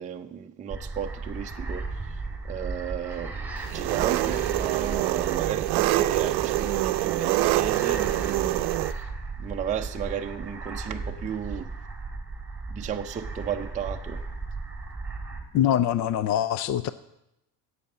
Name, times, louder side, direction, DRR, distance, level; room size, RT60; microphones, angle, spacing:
voice 1, 0.0-3.3 3.7-9.1 9.4-11.7 12.7-14.2, right 8 dB, 20° right, 3 dB, 0.6 m, -34 dB
sound 1, 0.7-15.4, right 3 dB, 5° right, 2.1 m, -36 dB
Engine, 3.7-8.9, right 18 dB, 80° right, 0.6 m, -25 dB
voice 2, 15.5-16.9, left 11 dB, 50° left, 15 dB, 0.5 m, -23 dB
12.5 x 8.4 x 7.6 m, 0.87 s
cardioid pair, 150°, 37 cm